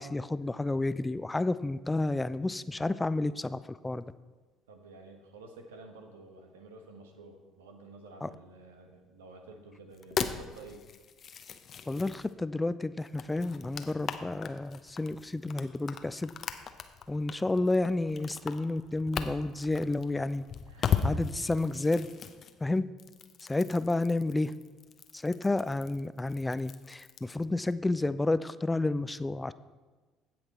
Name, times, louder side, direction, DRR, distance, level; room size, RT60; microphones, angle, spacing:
voice 1, 0.0-4.0 8.2-8.3 11.9-16.3 17.1-20.4 21.0-22.1 22.6-22.9 23.5-24.5 25.1-29.5, left 2 dB, 15° left, 15 dB, 0.4 m, -30 dB
voice 2, 4.7-10.8 20.7-21.2, right 3 dB, 85° right, 5 dB, 1.3 m, -51 dB
sound 1, 9.9-12.3 13.0-27.4, left 6 dB, 50° left, 0.8 m, -38 dB
16.0 x 5.9 x 4.3 m, 1.3 s
hypercardioid pair, 60°, 0 cm